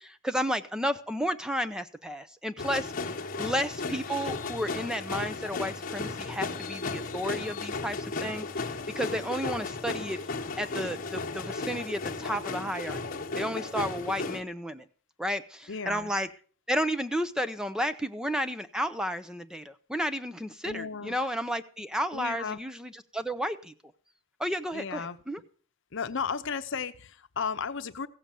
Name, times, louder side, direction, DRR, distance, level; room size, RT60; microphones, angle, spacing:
voice 1, 0.2-2.9 3.4-8.5 9.0-10.2 10.6-13.0 13.4-14.8 15.2-16.3 16.7-23.7 24.4-25.4, equal, 5° right, 11 dB, 0.6 m, -32 dB
sound 1, 2.6-14.4, left 3 dB, 45° left, 1.2 m, -35 dB
voice 2, 15.7-16.1 20.6-21.2 22.1-22.6 24.7-25.2 25.9-28.1, left 5 dB, 65° left, 11 dB, 0.8 m, -34 dB
15.5 x 6.9 x 7.5 m, 0.43 s
head